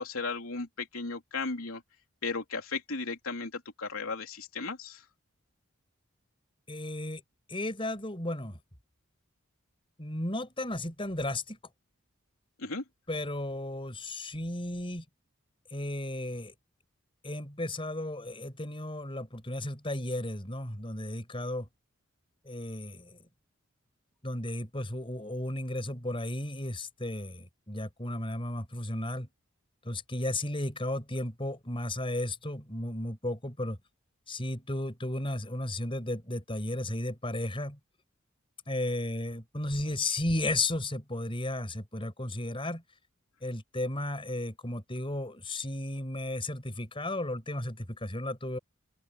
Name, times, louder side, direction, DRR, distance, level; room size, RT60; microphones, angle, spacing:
voice 1, 0.0-1.8 2.2-5.0 12.6-12.8, left 4 dB, 85° left, 3.3 m, -35 dB
voice 2, 6.7-7.2 7.5-8.6 10.0-11.6 13.1-15.0 15.7-16.5 17.2-21.7 22.4-23.2 24.2-29.3 29.8-33.8 34.3-37.8 38.7-42.8 43.4-48.6, left 1 dB, 25° left, 5.6 m, -34 dB
open air
head